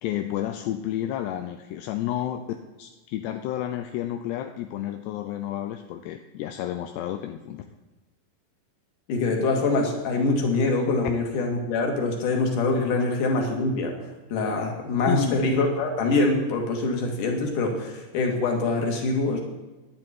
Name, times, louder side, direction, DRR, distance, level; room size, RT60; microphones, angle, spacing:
voice 1, 0.0-2.5 2.8-7.6 15.1-15.4, left 12 dB, 80° left, 6 dB, 2.8 m, -31 dB
voice 2, 9.1-13.9 14.3-19.4, left 3 dB, 55° left, 1 dB, 3.5 m, -24 dB
18.0 x 11.5 x 4.5 m, 1.2 s
omnidirectional pair, 4.9 m